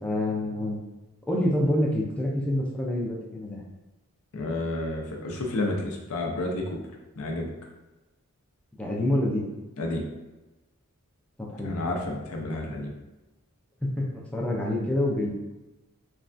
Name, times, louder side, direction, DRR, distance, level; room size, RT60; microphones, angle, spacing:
voice 1, 0.0-0.8 1.3-3.7 8.8-9.5 11.4-11.8 13.8-15.3, left 1 dB, 5° left, -3 dB, 0.4 m, -27 dB
voice 2, 4.3-6.8 7.2-7.5 9.8-10.0 11.6-12.9, left 2 dB, 65° left, 0 dB, 0.5 m, -30 dB
3.2 x 2.3 x 2.5 m, 1.1 s
head